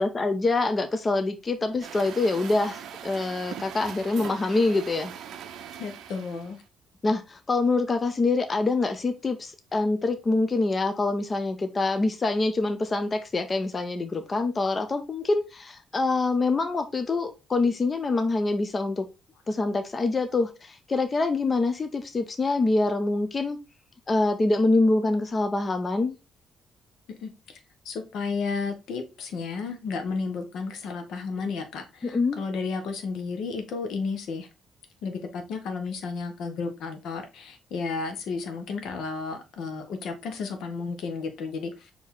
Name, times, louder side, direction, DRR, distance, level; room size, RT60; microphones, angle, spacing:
voice 1, 0.0-5.1 7.0-19.1 19.5-23.6 24.1-26.2 32.0-32.4, left 3 dB, 35° left, 0.6 m, -25 dB
Truck, 1.8-6.6, right 8 dB, 75° right, 0.4 m, -41 dB
voice 2, 5.8-6.6 27.2-27.6 27.8-34.5 35.0-41.9, left 4 dB, 80° left, 0.8 m, -33 dB
4.5 x 2.8 x 3.5 m
cardioid pair, 90°, 0 cm